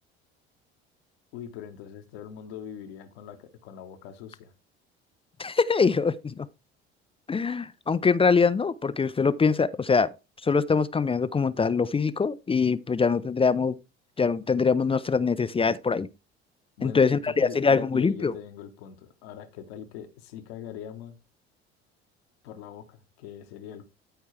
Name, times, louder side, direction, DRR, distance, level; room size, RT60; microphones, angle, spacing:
voice 1, 1.3-4.5 16.8-21.2 22.4-23.8, left 9 dB, 70° left, 1.4 m, -41 dB
voice 2, 5.4-6.5 7.3-10.1 10.4-13.8 14.2-16.1 16.8-18.3, left 5 dB, 15° left, 0.5 m, -23 dB
13.5 x 4.6 x 3.3 m
hypercardioid pair, 65°, 32 cm